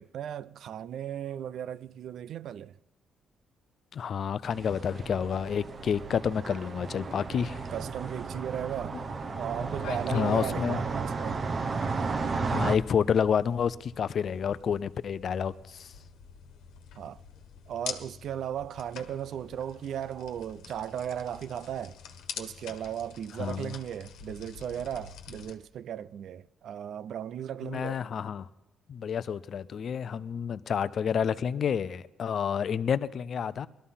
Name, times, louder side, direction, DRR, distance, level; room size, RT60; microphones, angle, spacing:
voice 1, 0.0-2.7 7.7-9.0 9.4-11.4 17.0-17.2 17.7-22.0 22.4-28.0, right 9 dB, 70° right, 0.4 m, -36 dB
voice 2, 3.9-7.6 10.1-10.8 12.5-15.9 23.4-23.7 27.6-28.5 28.9-33.7, left 7 dB, 55° left, 0.6 m, -29 dB
sound 1, 4.5-12.8, right 4 dB, 40° right, 0.9 m, -34 dB
sound 2, 8.9-25.6, left 7 dB, 85° left, 1.4 m, -46 dB
18.5 x 13.0 x 5.7 m
cardioid pair, 90°, 0 cm